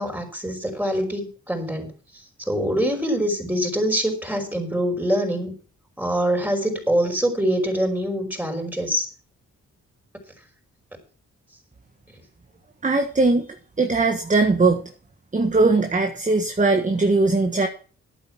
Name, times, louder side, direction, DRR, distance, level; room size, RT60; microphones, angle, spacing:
voice 1, 0.0-1.9 2.4-5.5 6.0-9.1, equal, 5° right, 3 dB, 5.5 m, -24 dB
voice 2, 12.8-13.4 13.8-14.8 15.3-17.7, right 3 dB, 25° right, 5 dB, 1.5 m, -19 dB
11.5 x 9.2 x 6.0 m, 0.40 s
cardioid pair, 75°, 30 cm